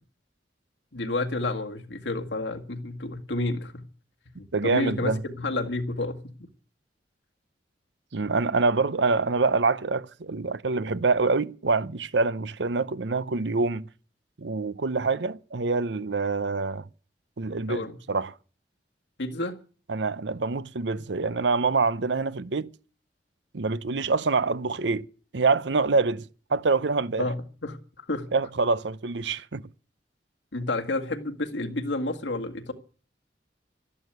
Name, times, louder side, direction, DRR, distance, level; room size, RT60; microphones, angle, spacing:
voice 1, 0.9-3.8 4.3-6.5 17.7-18.0 19.2-19.6 27.2-27.8 28.1-28.3 30.5-32.7, left 2 dB, 85° left, 2.0 m, -30 dB
voice 2, 4.5-5.2 8.1-13.8 14.4-16.9 17.4-18.3 19.9-22.7 23.5-25.1 25.3-26.2 26.5-27.2 28.3-29.7, right 4 dB, 80° right, 0.7 m, -25 dB
13.0 x 11.0 x 8.0 m
head